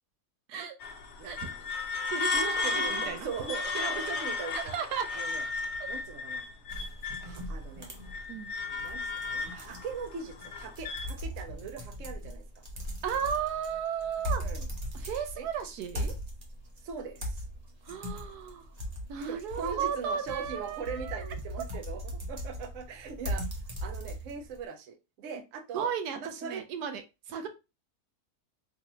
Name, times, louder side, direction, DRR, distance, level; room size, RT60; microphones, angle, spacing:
sound 1, 0.8-7.4 7.8-11.1, left 3 dB, 60° left, 0.8 m, -34 dB
voice 1, 1.2-1.7 2.2-4.7 5.1-5.4 5.9-6.4 7.2-7.9 8.6-12.6 14.4-14.7 15.4-15.5 16.8-17.4 19.2-23.4 23.8-25.9 26.2-26.6, right 6 dB, 65° right, 4 dB, 1.0 m, -40 dB
voice 2, 1.9-3.3 4.5-5.1 5.8-5.9 8.3-8.5 13.0-14.4 14.9-16.1 17.8-18.7 19.1-21.2 25.7-27.0 27.3-27.5, right 7 dB, 85° right, 7 dB, 1.2 m, -35 dB
sound 2, 6.7-24.6, equal, 35° right, 0.8 m, -39 dB
3.9 x 2.7 x 2.9 m, 0.26 s
omnidirectional pair, 1.6 m